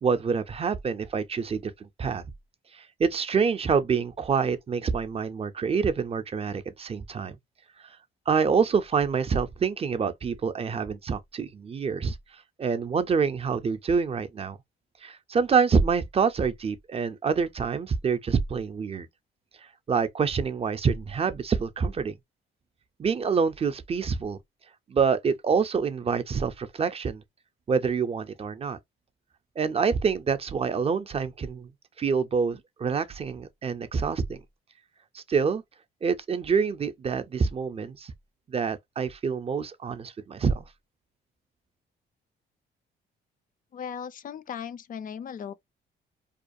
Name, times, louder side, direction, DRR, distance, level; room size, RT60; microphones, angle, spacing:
voice 1, 0.0-2.2 2.7-7.4 7.8-8.0 8.3-14.6 15.0-19.1 19.6-22.2 23.0-24.4 24.9-27.2 27.7-28.8 29.6-31.7 32.0-34.4 35.1-35.6 36.0-38.1 38.5-40.7, right 5 dB, 30° right, 0.4 m, -26 dB
voice 2, 43.7-45.5, left 7 dB, 45° left, 0.4 m, -37 dB
2.4 x 2.2 x 2.6 m
cardioid pair, 90°, 20 cm